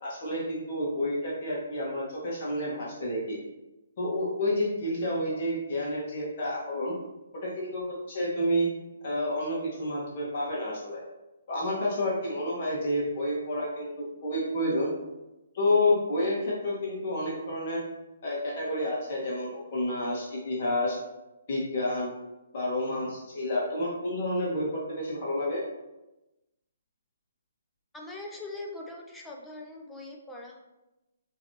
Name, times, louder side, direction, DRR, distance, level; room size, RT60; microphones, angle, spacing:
voice 1, 0.0-3.4 4.0-6.9 7.3-8.7 9.0-11.0 11.5-14.9 15.5-17.8 18.2-21.0 21.5-22.1 22.5-25.6, left 1 dB, 40° left, -5 dB, 1.4 m, -29 dB
voice 2, 27.9-30.6, left 2 dB, 5° left, -1 dB, 0.5 m, -41 dB
5.9 x 3.1 x 2.8 m, 0.99 s
hypercardioid pair, 165°, 0 cm